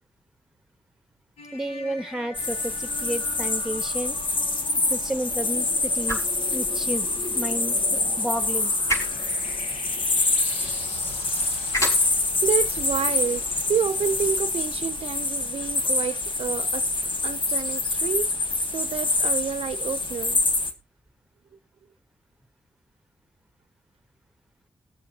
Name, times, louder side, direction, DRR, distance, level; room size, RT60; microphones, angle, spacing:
sound 1, 1.4-15.1, left 2 dB, 80° left, 2.0 m, -42 dB
voice 1, 1.5-4.2 4.9-6.2 6.5-7.1 7.3-8.7, right 1 dB, 5° right, 1.4 m, -31 dB
sound 2, 2.3-20.7, left 3 dB, 55° left, 1.7 m, -26 dB
sound 3, 5.9-15.3, equal, 30° left, 4.8 m, -37 dB
voice 2, 12.4-13.4 13.7-16.9 17.2-18.3 18.7-20.4, right 7 dB, 70° right, 0.6 m, -29 dB
21.0 x 7.2 x 2.9 m
cardioid pair, 65°, 10 cm